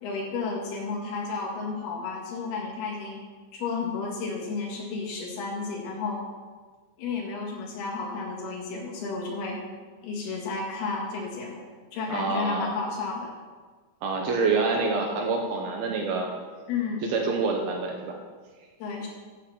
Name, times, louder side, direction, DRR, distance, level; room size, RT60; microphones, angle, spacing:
voice 1, 0.0-3.2 3.5-6.2 7.0-9.6 10.0-13.3 16.7-17.1 18.8-19.1, left 4 dB, 65° left, -3 dB, 3.5 m, -32 dB
voice 2, 12.1-12.7 14.0-16.3 17.1-18.2, right 4 dB, 75° right, 1 dB, 2.4 m, -26 dB
9.1 x 6.9 x 5.7 m, 1.5 s
omnidirectional pair, 5.3 m